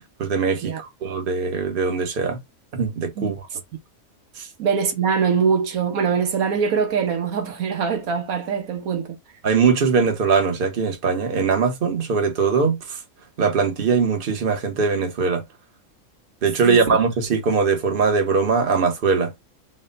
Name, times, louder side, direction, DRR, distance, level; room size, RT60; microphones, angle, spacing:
voice 1, 0.2-2.4 2.7-3.4 4.4-4.5 9.4-13.0 13.4-15.4 16.4-19.3, right 5 dB, 40° right, 1.1 m, -21 dB
voice 2, 4.6-9.2 16.6-17.0, right 6 dB, 85° right, 1.3 m, -23 dB
4.3 x 2.2 x 3.9 m
omnidirectional pair, 1.5 m